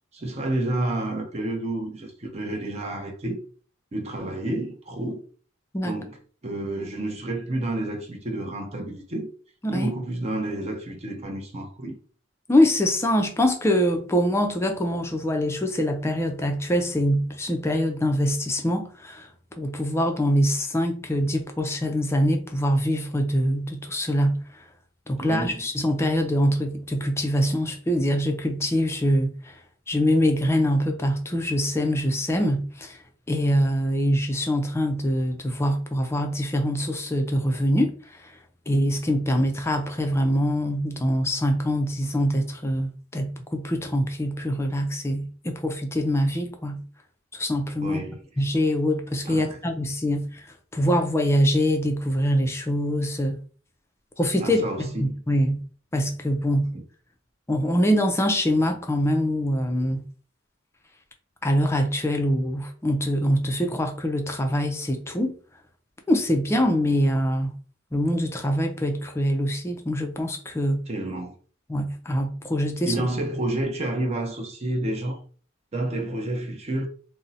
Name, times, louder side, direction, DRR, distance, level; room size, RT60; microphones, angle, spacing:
voice 1, 0.1-3.4 3.9-5.2 5.8-6.2 6.4-9.3 9.7-11.9 25.2-25.7 47.8-48.2 49.3-49.6 54.4-55.1 56.7-56.8 70.9-71.3 72.8-75.2 75.7-76.9, right 1 dB, 30° right, 0.6 m, -30 dB
voice 2, 12.5-19.3 19.6-24.6 25.1-29.6 29.9-33.0 33.3-38.4 38.7-46.8 47.3-48.0 48.4-50.5 50.7-53.4 54.2-55.6 55.9-56.7 57.5-60.0 61.4-65.4 66.1-67.5 67.9-70.8 71.7-73.0, equal, 15° left, 0.4 m, -24 dB
2.6 x 2.0 x 3.9 m
head